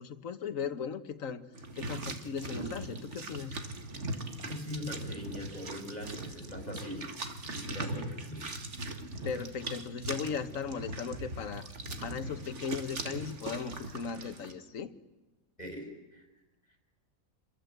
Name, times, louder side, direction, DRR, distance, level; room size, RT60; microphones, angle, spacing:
voice 1, 0.0-1.5 1.7-3.6 7.7-8.1 9.2-11.7 12.0-14.9, left 6 dB, 65° left, 12 dB, 1.6 m, -37 dB
sound 1, 1.5-14.5, right 2 dB, 50° right, 2.1 m, -40 dB
voice 2, 4.5-7.0 7.4-8.5 15.6-16.3, left 1 dB, 25° left, 3 dB, 5.4 m, -42 dB
27.0 x 22.5 x 8.0 m, 1.1 s
omnidirectional pair, 1.5 m